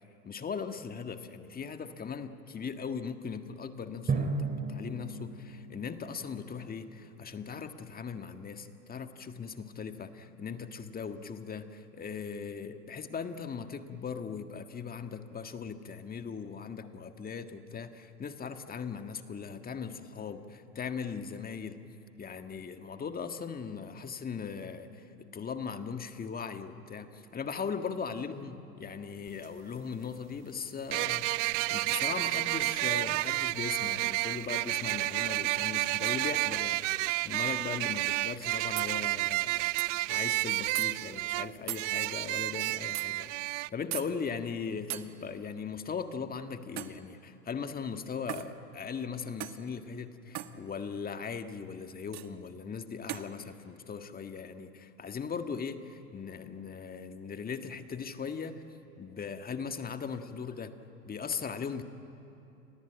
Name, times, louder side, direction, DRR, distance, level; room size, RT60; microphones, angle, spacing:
voice 1, 0.2-21.8 22.2-43.3 43.7-58.6 59.0-60.7 61.0-61.8, left 6 dB, 20° left, 8 dB, 1.7 m, -39 dB
Drum, 4.1-6.8, right 4 dB, 20° right, 3.1 m, -35 dB
sound 1, 29.3-29.4 30.9-43.7, right 20 dB, 55° right, 0.5 m, -31 dB
sound 2, 38.8-38.9 39.8-39.9 40.7-40.9 41.7-41.9 42.9-43.1 43.9-44.1 44.9-45.1 46.8-47.0 48.3-48.5 49.4-49.6 50.3-50.5 52.1-52.3 53.1-53.3, right 15 dB, 35° right, 1.4 m, -37 dB
29.5 x 22.0 x 9.0 m, 2.9 s
hypercardioid pair, 95°, 45 cm